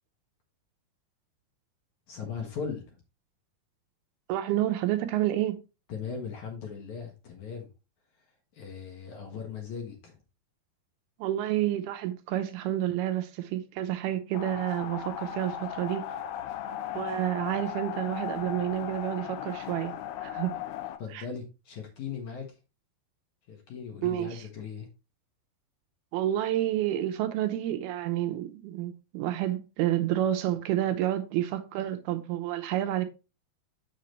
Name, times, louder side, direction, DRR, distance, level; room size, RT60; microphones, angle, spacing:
voice 1, 2.1-3.0 5.9-7.7 8.5-10.2 21.0-22.5 23.5-24.9, left 6 dB, 60° left, 2.4 m, -38 dB
voice 2, 4.3-5.6 11.2-16.0 16.9-19.9 20.2-20.6 21.1-21.3 24.0-24.4 26.1-33.1, right 13 dB, 80° right, 2.6 m, -29 dB
sound 1, 14.3-21.0, left 10 dB, 90° left, 2.7 m, -37 dB
7.3 x 6.7 x 3.1 m
omnidirectional pair, 4.5 m